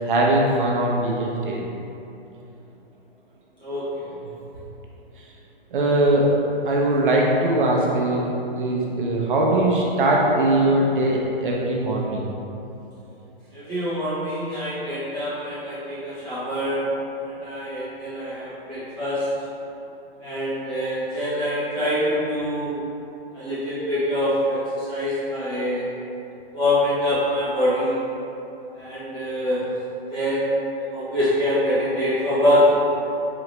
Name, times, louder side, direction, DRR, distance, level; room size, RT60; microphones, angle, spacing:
voice 1, 0.0-1.6 5.2-5.3 5.7-6.3 6.6-12.3, right 1 dB, 55° right, -2 dB, 0.6 m, -21 dB
voice 2, 13.5-16.8 17.2-19.3 20.2-22.8 23.3-25.9 26.5-27.9 28.7-29.6 30.1-32.7, left 1 dB, 15° left, -12 dB, 1.1 m, -24 dB
4.0 x 2.9 x 3.1 m, 2.9 s
hypercardioid pair, 155°, 31 cm